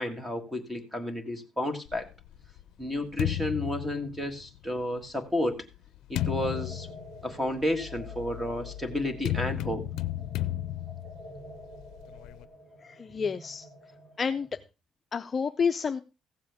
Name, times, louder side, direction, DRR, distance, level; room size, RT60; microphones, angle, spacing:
voice 1, 0.0-2.1 2.8-5.7 6.1-6.9 7.2-9.8, left 1 dB, 5° right, 7 dB, 1.6 m, -31 dB
sound 1, 1.9-4.7 5.4-12.4, left 14 dB, 85° left, 0.5 m, -35 dB
sound 2, 6.2-14.5, right 1 dB, 70° right, 4.1 m, -49 dB
voice 2, 12.8-13.6 14.2-14.6 15.1-16.0, left 6 dB, 30° left, 7 dB, 0.5 m, -29 dB
15.5 x 7.4 x 3.5 m, 0.29 s
cardioid pair, 140°, 0 cm